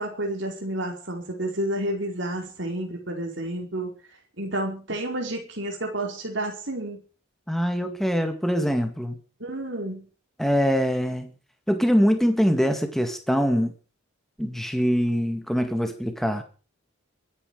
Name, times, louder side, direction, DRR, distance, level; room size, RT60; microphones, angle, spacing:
voice 1, 0.0-3.9 4.4-7.0 9.4-10.1, right 1 dB, 55° right, 2 dB, 4.8 m, -30 dB
voice 2, 7.5-9.2 10.4-11.3 11.7-13.8 14.4-16.4, equal, ahead, 6 dB, 2.0 m, -23 dB
23.0 x 10.0 x 5.1 m, 0.38 s
head